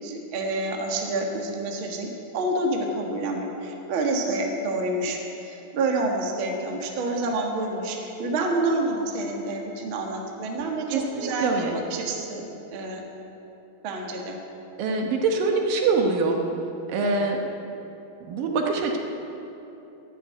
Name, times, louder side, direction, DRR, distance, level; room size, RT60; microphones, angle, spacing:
voice 1, 0.0-13.0 13.8-14.4, right 2 dB, 45° right, 1 dB, 1.7 m, -28 dB
voice 2, 10.9-11.8 14.8-16.4 16.9-17.4 18.2-19.0, right 4 dB, 70° right, 2 dB, 2.6 m, -24 dB
11.5 x 11.0 x 9.6 m, 3.0 s
omnidirectional pair, 4.3 m